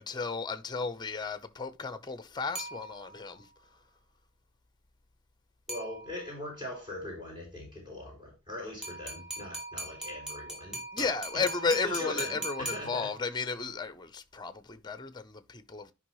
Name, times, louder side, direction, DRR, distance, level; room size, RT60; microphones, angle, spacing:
voice 1, 0.0-3.5 10.9-15.9, left 4 dB, 20° left, 0.8 m, -34 dB
sound 1, 2.5-3.4 5.7-6.4 8.8-13.4, right 1 dB, 5° right, 3.2 m, -41 dB
voice 2, 5.7-11.1 11.7-13.0, left 1 dB, 25° right, 4.4 m, -41 dB
11.5 x 5.5 x 3.1 m
head